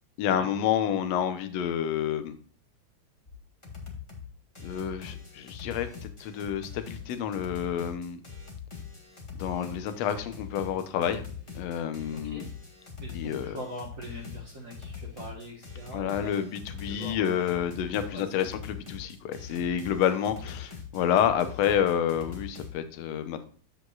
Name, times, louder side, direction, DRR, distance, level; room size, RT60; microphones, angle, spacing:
voice 1, 0.2-2.4 4.6-8.2 9.4-11.2 11.6-12.4 13.1-13.6 15.9-23.5, left 9 dB, 70° left, 9 dB, 1.9 m, -29 dB
sound 1, 3.3-3.4 3.6-4.3 4.5-22.7, left 6 dB, 35° left, 0.5 m, -43 dB
voice 2, 12.1-12.5 13.0-16.4 16.8-17.6 18.1-18.5, equal, 45° right, -1 dB, 1.0 m, -42 dB
14.0 x 5.2 x 2.3 m, 0.42 s
omnidirectional pair, 3.5 m